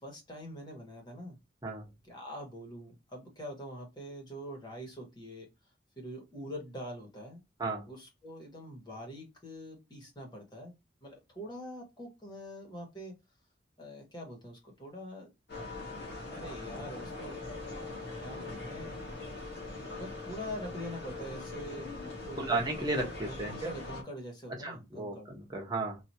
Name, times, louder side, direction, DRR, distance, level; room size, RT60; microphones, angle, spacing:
voice 1, 0.0-1.4 2.0-5.5 6.0-7.4 7.9-10.7 11.0-13.1 13.8-15.3 15.6-16.0 16.3-17.4 18.2-19.0 20.0-21.9 22.2-22.6 23.2-25.3, equal, 20° left, 1.5 m, -44 dB
sound 1, 15.5-24.0, left 2 dB, 55° left, 1.2 m, -41 dB
voice 2, 22.4-23.5 24.6-26.0, right 2 dB, 20° right, 1.0 m, -34 dB
3.0 x 2.8 x 2.7 m
head